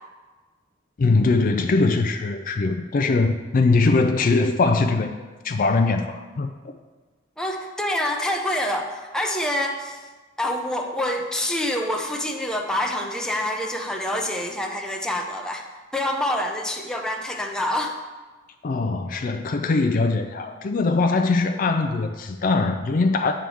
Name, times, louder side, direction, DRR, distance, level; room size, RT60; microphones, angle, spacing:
voice 1, 1.0-5.1 5.4-6.7 18.6-23.3, left 3 dB, 45° left, 6 dB, 0.4 m, -21 dB
voice 2, 7.4-10.0 10.4-15.6 15.9-18.0, left 1 dB, 5° left, 1 dB, 0.7 m, -26 dB
8.9 x 3.5 x 6.2 m, 1.3 s
head